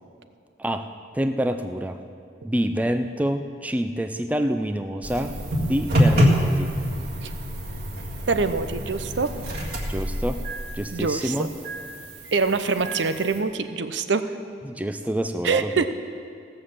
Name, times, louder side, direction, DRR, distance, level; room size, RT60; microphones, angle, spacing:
voice 1, 1.1-2.0 2.4-6.7 9.9-10.4 10.7-11.5 14.6-15.9, equal, 10° right, 8 dB, 0.4 m, -27 dB
sound 1, 5.0-13.4, equal, 55° right, 1.9 m, -26 dB
voice 2, 8.3-9.3 10.9-11.3 12.3-14.2 15.4-15.9, right 4 dB, 75° right, 10 dB, 0.6 m, -24 dB
16.5 x 6.6 x 7.3 m, 2.4 s
head